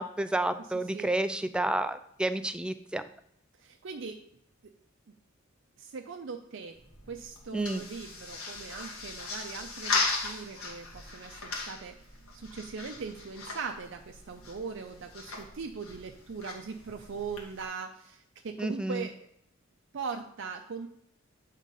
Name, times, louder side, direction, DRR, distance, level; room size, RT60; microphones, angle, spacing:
voice 1, 0.0-3.0 7.5-7.9 18.6-19.1, right 1 dB, 5° right, 10 dB, 0.3 m, -30 dB
voice 2, 3.6-4.2 4.6-4.7 5.8-6.8 7.1-12.0 12.3-19.1 19.9-20.9, right 5 dB, 60° right, 4 dB, 0.5 m, -40 dB
sound 1, 6.7-17.6, left 3 dB, 90° left, 1.7 m, -38 dB
8.3 x 3.7 x 5.3 m, 0.72 s
head